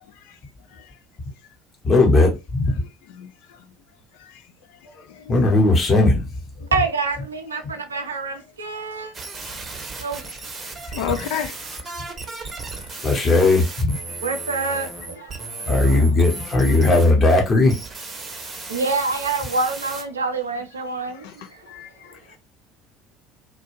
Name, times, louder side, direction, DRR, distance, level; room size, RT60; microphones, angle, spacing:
voice 1, 1.8-2.7 5.3-6.3 13.0-14.0 15.7-17.7, left 2 dB, 30° left, 0.9 m, -17 dB
voice 2, 6.7-9.1 10.0-10.2 14.2-16.0 18.2-21.6, right 4 dB, 80° right, 0.4 m, -27 dB
sound 1, 9.1-20.0, right 3 dB, 25° right, 0.7 m, -35 dB
voice 3, 10.9-11.6 12.8-12.9 14.1-14.2 15.6-15.7 21.2-21.3 21.7-22.2, left 8 dB, 60° left, 0.3 m, -31 dB
2.4 x 2.1 x 3.0 m
figure-of-eight pair, 65°, 0 cm